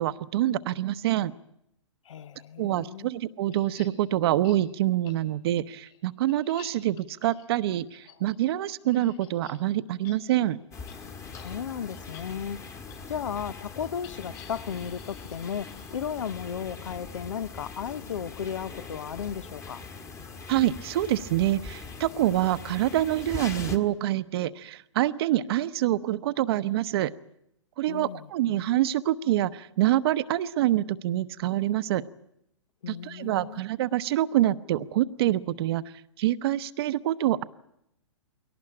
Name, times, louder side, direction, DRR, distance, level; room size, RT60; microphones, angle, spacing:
voice 1, 0.0-1.3 2.6-10.6 20.5-27.1 27.8-32.0 32.9-35.8 36.2-37.4, right 13 dB, 50° right, 0.9 m, -26 dB
voice 2, 2.0-3.1 11.4-12.6 13.1-19.8 27.9-28.3 32.8-33.6, left 8 dB, 75° left, 0.9 m, -35 dB
sound 1, 3.5-3.9 4.4-4.6 5.1-5.2 5.6-9.6 9.9-10.2 10.4-10.6 10.9-11.0 11.3-11.5 11.9-12.2 12.9-13.0 14.0-16.4, left 11 dB, 45° left, 5.4 m, -52 dB
sound 2, 10.7-23.8, left 4 dB, 15° left, 1.5 m, -42 dB
22.0 x 18.0 x 8.7 m
hypercardioid pair, 135°, 16 cm